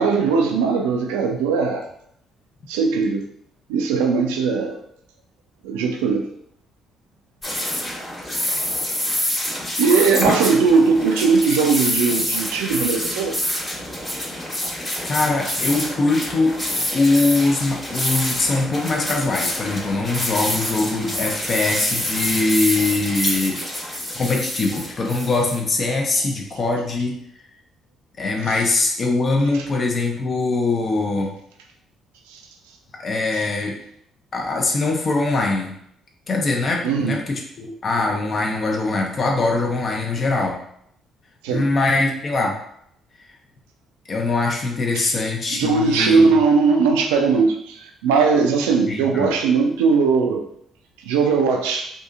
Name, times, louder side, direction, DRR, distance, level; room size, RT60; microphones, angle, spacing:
voice 1, 0.0-1.9 2.7-3.2 3.7-4.8 5.6-6.2 9.8-13.4 26.2-26.3 29.5-29.6 32.3-32.4 36.8-37.2 41.4-41.7 44.9-45.1 45.5-50.4 51.0-51.9, right 5 dB, 75° right, 3 dB, 0.3 m, -19 dB
sound 1, 7.4-25.6, left 1 dB, 30° left, 1.1 m, -26 dB
voice 2, 15.0-23.6 24.1-27.2 28.2-31.3 33.0-33.7 34.3-35.7 36.3-40.6 41.5-42.6 44.1-46.4 48.9-49.3, left 3 dB, 45° left, 1 dB, 0.6 m, -22 dB
2.7 x 2.6 x 2.4 m, 0.71 s
figure-of-eight pair, 45°, 0 cm